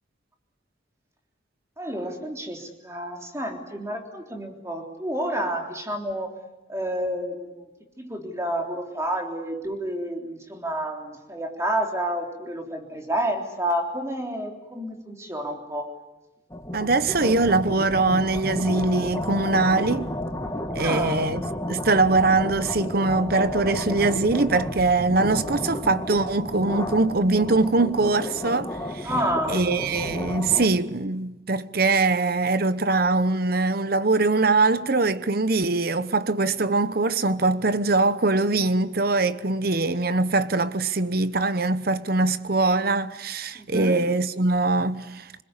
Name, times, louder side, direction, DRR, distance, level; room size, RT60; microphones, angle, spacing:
voice 1, 1.8-6.3 6.7-7.7 8.0-15.9 20.8-21.3 29.0-29.7 43.6-44.1, right 1 dB, 15° right, 3.5 m, -30 dB
sound 1, 16.5-30.7, left 1 dB, 15° left, 2.1 m, -32 dB
voice 2, 16.7-20.1 20.7-21.4 21.7-29.1 29.5-45.4, right 3 dB, 50° right, 1.0 m, -22 dB
26.5 x 21.0 x 9.8 m
head